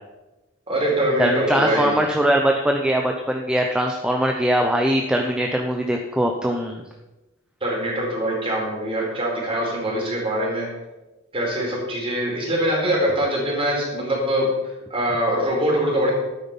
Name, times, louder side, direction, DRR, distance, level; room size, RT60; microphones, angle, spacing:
voice 1, 0.7-2.0 7.6-10.7 11.3-14.5 14.9-16.1, right 1 dB, 25° right, -2 dB, 4.2 m, -23 dB
voice 2, 1.2-6.8, equal, 5° right, 2 dB, 0.8 m, -21 dB
12.5 x 9.4 x 5.5 m, 1.0 s
head